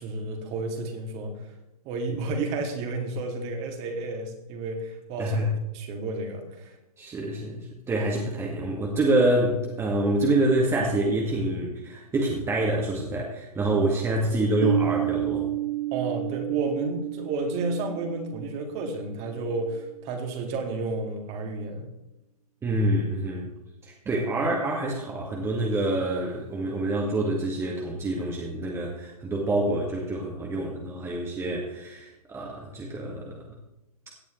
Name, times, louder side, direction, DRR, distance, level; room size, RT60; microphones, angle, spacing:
voice 1, 0.0-1.5 1.8-5.4 5.7-6.8 15.9-21.9, right 3 dB, 35° right, 3 dB, 2.4 m, -31 dB
voice 2, 7.0-15.5 22.6-23.5 23.8-33.4, right 1 dB, 15° right, -2 dB, 1.8 m, -26 dB
Piano, 14.6-20.0, right 12 dB, 55° right, 1.8 m, -31 dB
17.0 x 9.3 x 3.2 m, 0.90 s
hypercardioid pair, 125°, 20 cm